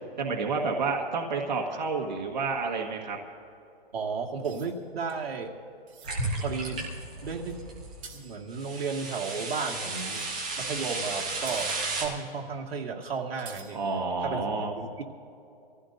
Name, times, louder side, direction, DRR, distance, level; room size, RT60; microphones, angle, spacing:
voice 1, 0.2-3.2 13.7-14.7, right 4 dB, 50° right, 0 dB, 1.7 m, -29 dB
sound 1, 1.9-4.0 4.4-8.9 9.5-10.7 10.9-11.0 11.3-12.3 12.5-12.6 12.8-12.9 13.4-14.0, right 6 dB, 30° right, 2.1 m, -51 dB
voice 2, 3.9-5.5 6.3-6.9 7.2-7.7 8.1-10.2 10.6-13.8 14.2-15.0, right 5 dB, 80° right, -1 dB, 2.2 m, -34 dB
sound 2, 6.0-8.0 8.5-12.0, right 2 dB, 5° right, 0.5 m, -34 dB
26.0 x 15.5 x 2.7 m, 2.6 s
hypercardioid pair, 180°, 30 cm